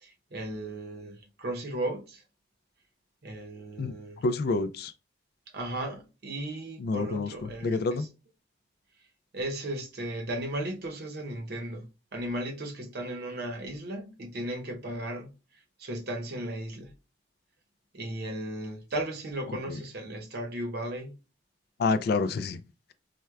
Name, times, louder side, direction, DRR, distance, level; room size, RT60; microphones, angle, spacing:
voice 1, 0.0-2.2 3.2-4.2 5.5-8.1 9.3-15.3 15.8-16.9 17.9-21.1, right 1 dB, 55° right, 0.8 m, -36 dB
voice 2, 4.2-4.9 6.8-8.1 19.7-19.8 21.8-22.6, left 3 dB, 55° left, 0.3 m, -28 dB
4.4 x 2.2 x 2.3 m
head